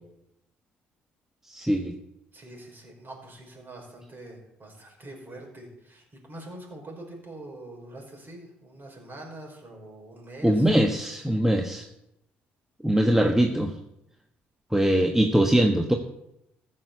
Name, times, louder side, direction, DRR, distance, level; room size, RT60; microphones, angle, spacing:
voice 1, 1.5-1.9 10.4-11.9 12.8-13.7 14.7-15.9, right 1 dB, 5° right, 4 dB, 1.3 m, -22 dB
voice 2, 2.3-10.7, right 1 dB, 40° right, 0 dB, 5.5 m, -44 dB
14.5 x 6.5 x 7.0 m, 0.82 s
hypercardioid pair, 50°, 5 cm